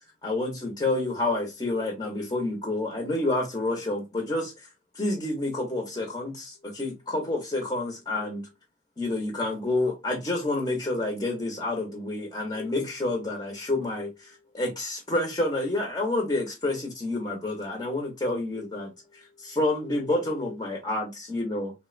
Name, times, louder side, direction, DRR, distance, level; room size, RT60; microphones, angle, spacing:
voice 1, 0.2-4.5 4.9-8.5 9.0-21.7, left 2 dB, 25° left, 0.8 m, -29 dB
3.6 x 2.1 x 2.4 m
head